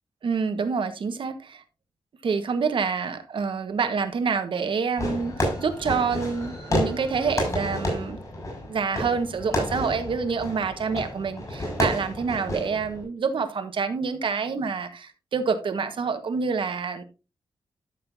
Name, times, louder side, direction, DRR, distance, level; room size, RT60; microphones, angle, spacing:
voice 1, 0.2-1.6 2.2-8.2 8.6-17.0, right 5 dB, 65° right, 1.4 m, -27 dB
Fireworks, 5.0-13.0, left 1 dB, 35° left, 5.8 m, -30 dB
12.5 x 6.7 x 2.7 m
wide cardioid pair, 115°, 9 cm